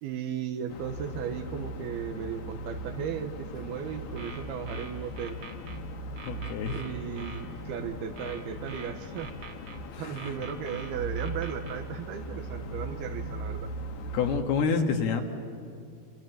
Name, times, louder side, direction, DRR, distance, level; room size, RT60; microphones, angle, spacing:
voice 1, 0.0-5.4 6.7-9.3 10.0-13.7, right 8 dB, 80° right, 7 dB, 3.0 m, -36 dB
sound 1, 0.7-14.4, right 1 dB, 60° left, 2.4 m, -39 dB
sound 2, 4.0-5.8 6.2-7.4 8.2-9.8 10.2-11.8, right 4 dB, 45° right, 1.9 m, -45 dB
voice 2, 6.3-6.9 9.9-10.3 14.1-15.2, left 5 dB, 75° left, 3 dB, 3.5 m, -28 dB
27.0 x 26.0 x 7.8 m, 2.3 s
omnidirectional pair, 4.6 m